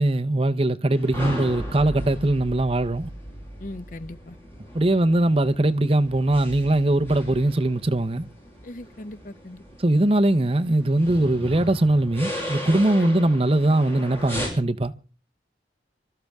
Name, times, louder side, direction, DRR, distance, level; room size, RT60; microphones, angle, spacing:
voice 1, 0.0-3.1 4.7-8.3 9.8-14.9, right 1 dB, 30° right, 0.7 m, -21 dB
sound 1, 0.9-14.5, equal, 15° left, 6.1 m, -37 dB
voice 2, 3.6-4.4 8.6-9.6 13.0-13.2, left 1 dB, 45° left, 0.7 m, -38 dB
24.5 x 13.0 x 3.5 m
head